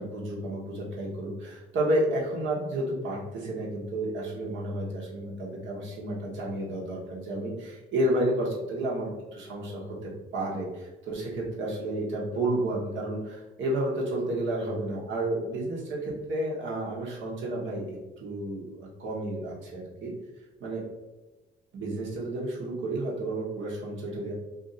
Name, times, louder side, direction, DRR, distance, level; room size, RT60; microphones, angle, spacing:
voice 1, 0.0-20.1 20.6-20.8 21.7-24.3, right 1 dB, 75° right, -3 dB, 1.2 m, -31 dB
2.7 x 2.6 x 4.0 m, 1.1 s
cardioid pair, 90°, 20 cm